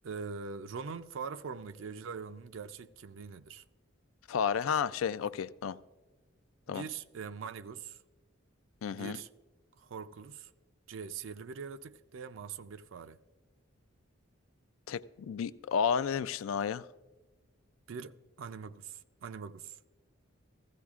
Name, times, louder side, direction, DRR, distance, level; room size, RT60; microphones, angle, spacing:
voice 1, 0.0-3.6 5.2-5.3 6.7-8.0 8.9-9.3 9.8-10.5 10.9-13.2 17.9-19.8, right 5 dB, 70° right, 0.4 m, -43 dB
voice 2, 4.3-5.8 6.7-6.8 8.8-9.2 14.9-16.9, left 7 dB, 80° left, 0.3 m, -32 dB
15.5 x 15.0 x 2.4 m
head